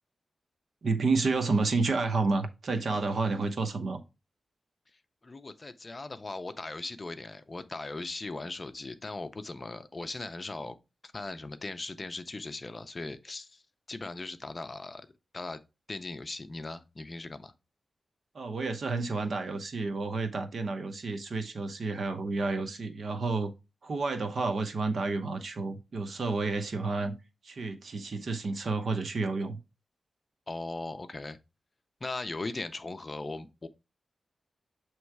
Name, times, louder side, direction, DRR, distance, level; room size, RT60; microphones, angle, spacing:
voice 1, 0.8-4.0 18.3-23.5 23.8-27.1 27.4-29.6, right 3 dB, 60° right, 0.9 m, -30 dB
voice 2, 5.2-10.7 11.0-13.6 13.9-15.1 15.3-15.6 15.9-17.5 30.5-31.4 32.0-33.7, left 2 dB, 30° left, 0.6 m, -39 dB
7.5 x 3.1 x 4.6 m
wide cardioid pair, 120°, 0 cm